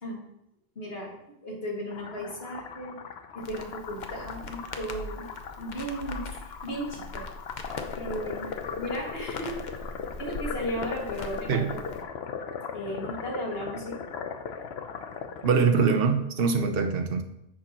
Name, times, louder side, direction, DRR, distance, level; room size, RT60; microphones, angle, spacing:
voice 1, 0.8-3.0 3.3-5.3 5.6-7.3 7.9-9.6 10.2-11.9 12.7-14.0, equal, 70° left, -3 dB, 2.4 m, -35 dB
sound 1, 1.9-15.5, left 6 dB, 90° left, 1.0 m, -39 dB
Crackle, 3.4-12.0, left 2 dB, 50° left, 0.9 m, -41 dB
voice 2, 15.4-17.2, right 5 dB, 65° right, 5 dB, 1.0 m, -23 dB
10.0 x 7.5 x 3.0 m, 0.82 s
omnidirectional pair, 1.0 m